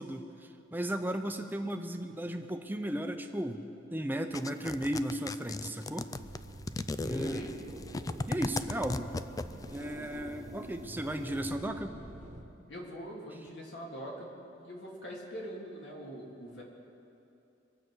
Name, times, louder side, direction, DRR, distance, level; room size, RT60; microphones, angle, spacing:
voice 1, 0.0-3.6 3.9-6.1 7.0-7.4 8.3-9.1 9.7-11.9, right 1 dB, 10° right, 6 dB, 0.7 m, -35 dB
sound 1, 4.3-9.8, left 2 dB, 20° left, 0.3 m, -36 dB
sound 2, 6.1-12.4, right 1 dB, 45° right, 1.2 m, -46 dB
voice 2, 12.7-14.3 14.5-16.6, equal, 70° left, -2 dB, 2.8 m, -43 dB
23.5 x 8.0 x 6.2 m, 2.8 s
head